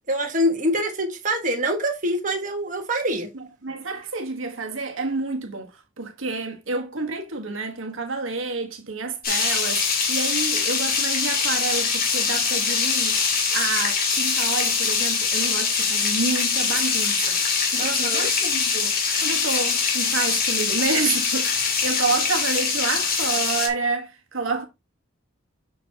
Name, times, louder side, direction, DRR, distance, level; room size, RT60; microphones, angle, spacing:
voice 1, 0.1-3.3 17.8-18.3, equal, 40° right, 1.4 m, -25 dB
voice 2, 3.3-5.7 6.0-13.2 13.5-18.9 19.2-24.6, right 4 dB, 65° right, 1.4 m, -29 dB
sound 1, 9.2-23.7, left 5 dB, 45° left, 2.1 m, -23 dB
7.0 x 6.2 x 2.8 m
head